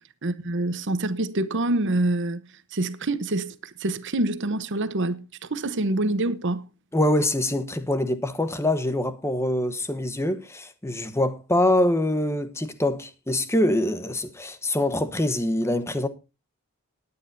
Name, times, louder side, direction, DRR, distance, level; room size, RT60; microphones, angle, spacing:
voice 1, 0.2-2.4 2.7-5.2 5.5-6.6, right 2 dB, 55° right, 0.9 m, -26 dB
voice 2, 6.9-16.1, left 1 dB, 10° left, 1.0 m, -24 dB
19.0 x 9.7 x 2.6 m
head